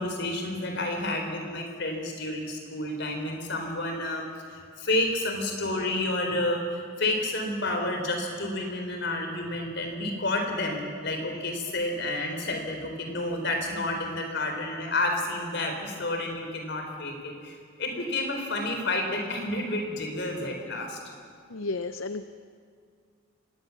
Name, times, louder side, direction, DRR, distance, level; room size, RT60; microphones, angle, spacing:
voice 1, 0.0-21.0, left 2 dB, 55° left, 3 dB, 4.2 m, -30 dB
voice 2, 21.5-22.2, left 3 dB, 70° left, 11 dB, 0.7 m, -32 dB
24.5 x 19.5 x 7.2 m, 2.2 s
head